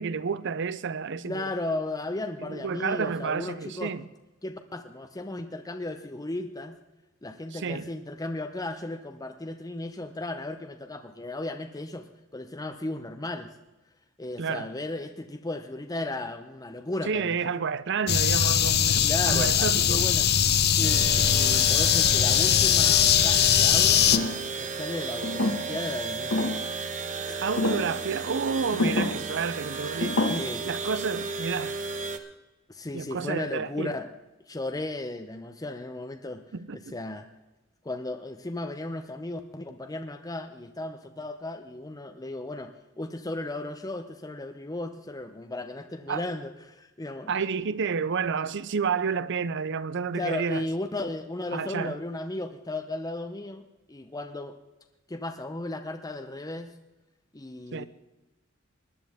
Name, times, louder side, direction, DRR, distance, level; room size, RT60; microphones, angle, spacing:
voice 1, 0.0-1.5 2.4-4.1 7.5-7.9 14.4-14.7 17.1-20.0 27.4-30.2 30.6-31.7 32.9-33.9 36.5-36.9 46.1-46.2 47.3-50.7 51.5-51.9 57.7-57.9, right 5 dB, 60° right, 0.6 m, -30 dB
voice 2, 1.3-3.9 4.4-6.8 7.2-12.1 12.3-13.5 14.2-17.4 19.0-20.3 20.7-24.1 24.6-26.5 27.3-27.4 28.7-29.0 30.3-30.7 32.7-34.1 34.5-36.4 36.9-37.3 37.8-47.3 50.1-54.5 55.1-56.7 57.3-57.9, left 2 dB, 20° left, 0.7 m, -35 dB
sound 1, 18.1-24.2, left 9 dB, 50° left, 0.7 m, -21 dB
sound 2, 20.8-32.2, right 4 dB, 40° right, 1.2 m, -34 dB
sound 3, 24.1-24.5 25.2-25.9 26.3-26.7 27.6-27.9 28.8-29.2 30.0-30.4, left 2 dB, 85° left, 1.6 m, -27 dB
19.5 x 11.5 x 3.6 m
head